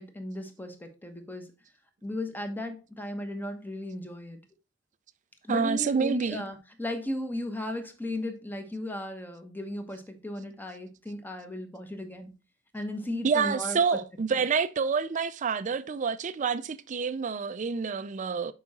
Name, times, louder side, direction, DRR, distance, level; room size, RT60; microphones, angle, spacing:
voice 1, 0.0-1.5 2.0-4.4 5.4-12.3 12.7-14.0 14.3-14.4, left 1 dB, 10° left, 1.1 m, -36 dB
voice 2, 5.5-6.4 13.2-18.5, right 5 dB, 40° right, 0.4 m, -28 dB
6.9 x 4.9 x 4.1 m
head